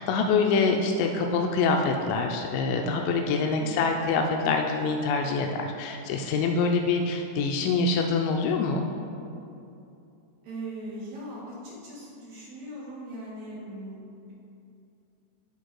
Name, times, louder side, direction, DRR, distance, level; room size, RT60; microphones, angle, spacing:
voice 1, 0.0-8.8, left 4 dB, 85° left, 2 dB, 2.2 m, -25 dB
voice 2, 10.4-14.3, right 1 dB, 60° right, -6 dB, 2.5 m, -40 dB
10.5 x 3.6 x 4.7 m, 2.7 s
omnidirectional pair, 3.8 m